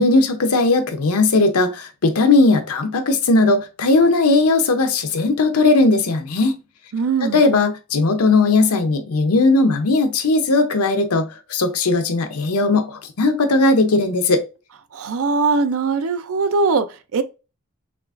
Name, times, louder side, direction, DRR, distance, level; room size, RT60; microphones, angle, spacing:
voice 1, 0.0-6.6 7.2-14.4, left 3 dB, 85° left, 0.7 m, -17 dB
voice 2, 6.9-7.4 14.9-17.2, right 4 dB, 70° right, 0.4 m, -21 dB
5.9 x 2.4 x 2.5 m
head